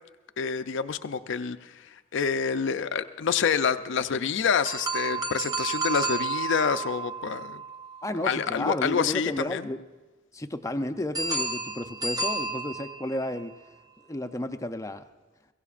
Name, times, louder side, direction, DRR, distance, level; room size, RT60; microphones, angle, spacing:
voice 1, 0.4-7.6 8.2-9.7, left 6 dB, 65° left, 11 dB, 0.5 m, -27 dB
sound 1, 4.6-8.7 11.1-13.5, right 3 dB, 20° right, 0.7 m, -32 dB
voice 2, 8.0-9.8 10.3-13.5 14.1-15.0, left 1 dB, 15° left, 9 dB, 0.5 m, -32 dB
22.5 x 16.0 x 2.5 m, 1.2 s
head